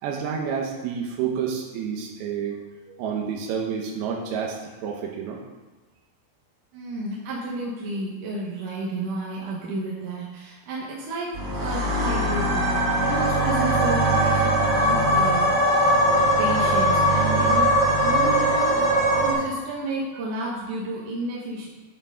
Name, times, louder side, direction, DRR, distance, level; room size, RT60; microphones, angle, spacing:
voice 1, 0.0-2.6 2.9-5.4 13.1-13.2 17.9-18.3, right 7 dB, 90° right, 0 dB, 2.9 m, -30 dB
voice 2, 6.7-17.7 18.0-18.7 19.2-21.7, right 1 dB, 65° right, -5 dB, 2.6 m, -31 dB
sound 1, 11.3-19.3, right 1 dB, 40° right, 3.1 m, -21 dB
9.3 x 8.5 x 3.7 m, 1.2 s
omnidirectional pair, 4.3 m